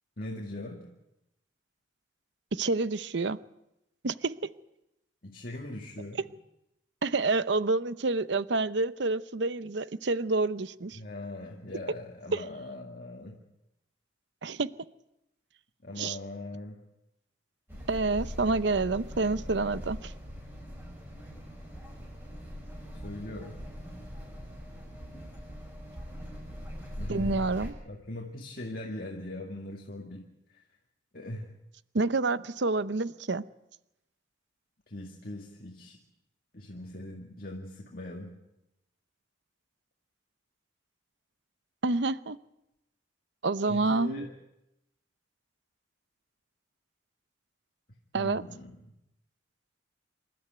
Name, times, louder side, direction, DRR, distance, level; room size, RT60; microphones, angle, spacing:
voice 1, 0.2-0.9 5.2-6.2 10.9-13.4 15.8-16.8 23.0-23.6 27.0-27.5 27.9-30.6 31.1-31.5 34.9-36.0 36.5-38.3 43.7-44.3 48.1-48.7, left 1 dB, 45° left, 0 dB, 2.2 m, -41 dB
voice 2, 2.5-3.4 4.0-4.3 6.1-6.2 7.0-11.0 12.3-12.4 14.4-14.7 16.0-16.2 17.9-20.1 27.1-27.7 31.9-33.4 41.8-42.4 43.4-44.3 48.1-48.4, right 3 dB, 65° right, 15 dB, 0.7 m, -28 dB
sound 1, 17.7-27.7, equal, 10° right, 6.8 m, -42 dB
27.0 x 13.0 x 9.4 m, 0.88 s
head